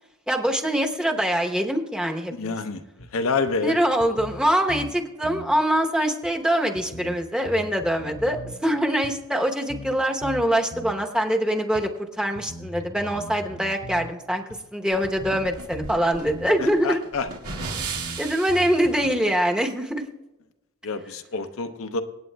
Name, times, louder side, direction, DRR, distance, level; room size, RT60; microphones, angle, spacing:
voice 1, 0.3-2.6 3.6-11.9 12.2-14.4 14.7-17.0 18.2-20.0, equal, 5° right, 3 dB, 0.9 m, -24 dB
voice 2, 2.3-2.8 3.1-3.8 16.6-17.3 20.8-22.0, left 4 dB, 65° left, 7 dB, 0.7 m, -27 dB
sound 1, 3.0-3.1 3.5-3.6 4.0-5.0 5.2-5.5 6.2-6.3 6.7-8.6 9.0-9.1 9.7-10.0 10.2-11.0 11.7-11.8 12.3-14.1 14.5-14.6 15.0-16.0 16.3-16.5 17.3-17.4 17.8-19.1, equal, 85° left, 2.2 m, -39 dB
sound 2, 14.9-18.8, right 4 dB, 85° right, 2.2 m, -35 dB
26.0 x 8.9 x 2.2 m, 1.0 s
head